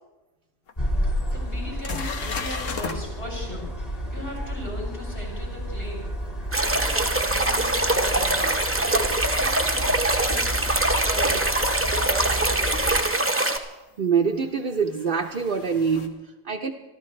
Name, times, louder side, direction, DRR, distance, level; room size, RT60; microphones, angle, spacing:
sound 1, 0.7-0.8 1.3-1.4 1.8-3.0 8.1-8.2 11.0-11.1 12.8-12.9 14.2-16.1, left 5 dB, 90° left, 1.5 m, -35 dB
sound 2, 0.8-13.0, equal, 30° left, 2.0 m, -31 dB
voice 1, 1.3-6.1 6.6-8.5 8.8-10.6 11.0-11.4 11.8-13.1, equal, 65° left, -2 dB, 6.3 m, -38 dB
sound 3, 6.5-13.6, right 2 dB, 10° right, 0.8 m, -23 dB
voice 2, 14.0-16.7, right 6 dB, 50° right, 2 dB, 0.9 m, -25 dB
26.0 x 13.0 x 3.2 m, 1.1 s
omnidirectional pair, 1.3 m